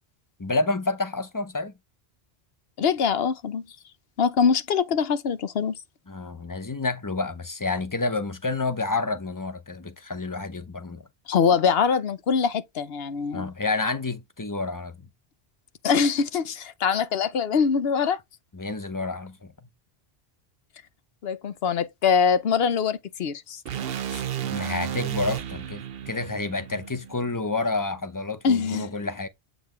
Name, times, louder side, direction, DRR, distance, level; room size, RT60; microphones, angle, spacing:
voice 1, 0.4-1.7 6.1-11.0 13.3-15.0 18.5-19.5 24.4-29.3, left 3 dB, 20° left, 0.7 m, -29 dB
voice 2, 2.8-3.7 4.2-5.8 11.3-13.5 15.8-18.2 21.2-23.6 24.1-24.2 28.4-28.9, left 6 dB, 70° left, 1.0 m, -23 dB
sound 1, 23.7-27.8, right 10 dB, 65° right, 0.9 m, -33 dB
8.0 x 3.9 x 3.2 m
omnidirectional pair, 1.1 m